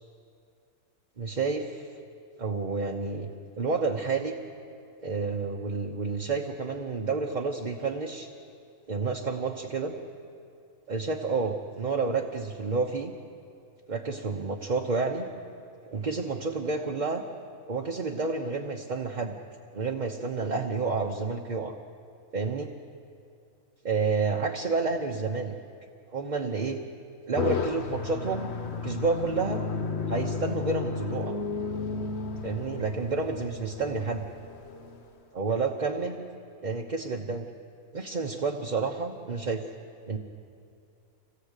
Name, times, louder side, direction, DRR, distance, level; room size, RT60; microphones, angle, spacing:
voice 1, 1.2-1.9 2.4-3.3 3.6-4.3 5.0-8.3 8.9-9.9 10.9-13.1 13.9-15.3 15.9-17.2 17.7-19.3 19.7-21.7 22.3-22.7 23.8-25.6 26.1-26.8 27.3-29.6 30.1-31.3 32.4-34.2 35.3-36.2 36.6-37.5 37.9-39.6 40.1-40.2, right 4 dB, 35° right, 1 dB, 1.0 m, -30 dB
sound 1, 27.3-35.1, left 5 dB, 50° left, 1.2 m, -33 dB
26.0 x 17.5 x 8.2 m, 2.5 s
omnidirectional pair, 1.6 m